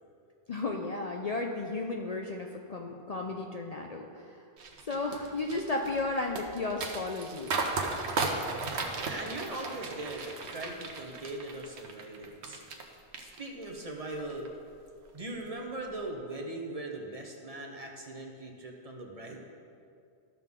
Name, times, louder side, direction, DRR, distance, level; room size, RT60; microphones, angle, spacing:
voice 1, 0.5-4.4 4.9-7.7, left 3 dB, 45° left, 2 dB, 0.5 m, -34 dB
sound 1, 4.6-12.8 13.1-13.8 14.2-14.5, right 3 dB, 85° right, 1.1 m, -35 dB
voice 2, 9.0-12.6 13.2-14.5 15.1-19.4, right 2 dB, 35° right, 1 dB, 0.9 m, -40 dB
13.5 x 6.1 x 3.7 m, 2.4 s
omnidirectional pair, 1.1 m